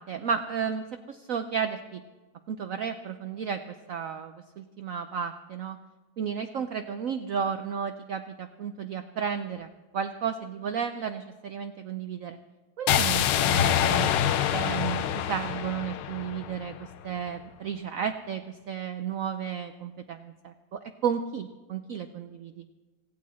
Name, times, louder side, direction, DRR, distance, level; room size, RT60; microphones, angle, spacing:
voice 1, 0.0-2.0 2.5-5.8 6.2-9.7 9.9-12.4 12.8-14.1 14.5-22.6, right 7 dB, 65° right, 8 dB, 0.8 m, -33 dB
sound 1, 12.9-16.9, left 10 dB, 75° left, 1.4 m, -26 dB
16.5 x 16.5 x 4.2 m, 1.3 s
omnidirectional pair, 2.0 m